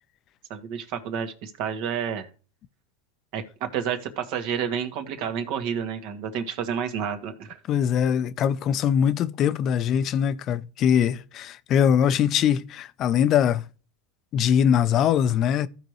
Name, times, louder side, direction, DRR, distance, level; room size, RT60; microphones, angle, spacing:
voice 1, 0.5-2.3 3.3-7.6, right 7 dB, 60° right, 1.7 m, -30 dB
voice 2, 7.7-13.6 14.3-15.7, left 8 dB, 40° left, 0.6 m, -22 dB
15.0 x 5.1 x 3.2 m
supercardioid pair, 115°, 0 cm